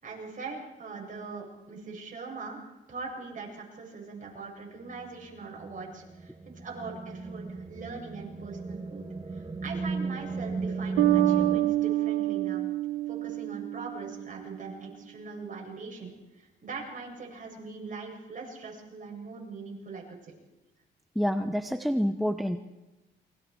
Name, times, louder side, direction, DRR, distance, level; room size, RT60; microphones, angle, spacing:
voice 1, 0.0-2.6 2.9-9.0 9.3-12.6 13.1-20.3, right 4 dB, 40° right, -1 dB, 7.6 m, -41 dB
sound 1, 4.9-11.6, right 4 dB, 20° right, 1.6 m, -35 dB
Bass guitar, 11.0-14.5, right 16 dB, 85° right, 1.0 m, -27 dB
voice 2, 21.2-22.6, equal, ahead, 7 dB, 0.9 m, -28 dB
28.5 x 23.0 x 4.8 m, 1.0 s
cardioid pair, 90°, 20 cm